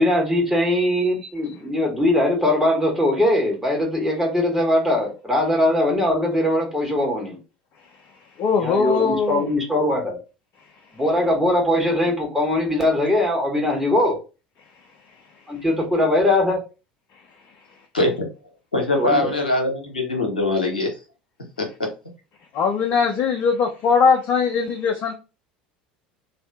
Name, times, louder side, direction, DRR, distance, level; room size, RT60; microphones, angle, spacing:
voice 1, 0.0-7.4 8.6-10.2 10.9-14.2 15.5-16.6 19.0-19.3, left 1 dB, 5° right, 1.2 m, -21 dB
voice 2, 8.4-9.4 22.5-25.1, left 5 dB, 45° left, 0.5 m, -20 dB
voice 3, 17.9-18.3 18.7-20.9 21.6-21.9, left 2 dB, 85° left, 0.8 m, -22 dB
2.6 x 2.4 x 3.4 m
figure-of-eight pair, 70°, 5 cm